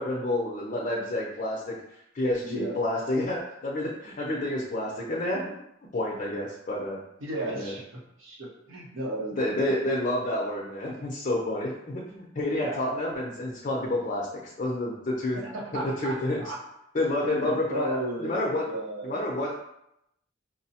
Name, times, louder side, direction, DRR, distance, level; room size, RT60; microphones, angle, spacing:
voice 1, 0.0-1.8 2.1-5.6 5.9-7.0 7.5-7.7 9.4-15.4 15.7-16.4 16.9-18.6 19.0-19.5, left 1 dB, 40° left, -3 dB, 0.5 m, -29 dB
voice 2, 2.4-2.8 7.2-9.8 12.5-12.8 15.3-16.6 17.2-19.2, right 1 dB, 90° right, -2 dB, 0.8 m, -35 dB
5.0 x 2.0 x 2.7 m, 0.81 s
head